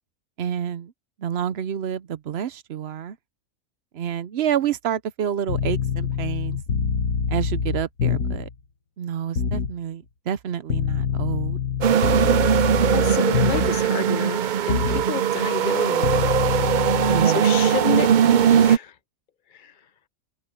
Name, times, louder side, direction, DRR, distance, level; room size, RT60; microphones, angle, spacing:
voice 1, 0.4-0.9 1.2-3.2 3.9-6.6 7.3-8.5 9.0-11.6 17.1-17.5, right 9 dB, 55° right, 0.8 m, -28 dB
sound 1, 5.5-8.5 9.4-9.8 10.7-13.9 14.7-15.1 16.0-17.3, left 6 dB, 85° left, 1.9 m, -25 dB
sound 2, 11.8-18.8, right 8 dB, 75° right, 0.4 m, -20 dB
voice 2, 12.9-16.1 17.3-18.9 19.5-19.7, left 6 dB, 40° left, 0.8 m, -29 dB
open air
omnidirectional pair, 1.4 m